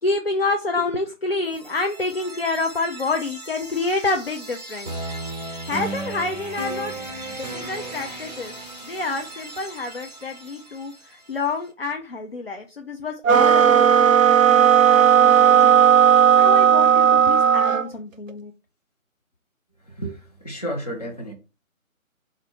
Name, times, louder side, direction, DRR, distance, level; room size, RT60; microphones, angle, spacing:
voice 1, 0.0-4.9 5.7-6.9 7.3-8.6 8.8-15.8 16.1-18.5, left 3 dB, 45° left, 0.5 m, -28 dB
sound 1, 1.4-11.4, right 2 dB, 30° right, 0.8 m, -36 dB
sound 2, 13.2-17.9, right 8 dB, 65° right, 0.6 m, -15 dB
voice 2, 19.9-21.3, right 1 dB, 30° left, 1.1 m, -32 dB
4.2 x 2.6 x 4.2 m
figure-of-eight pair, 155°, 42 cm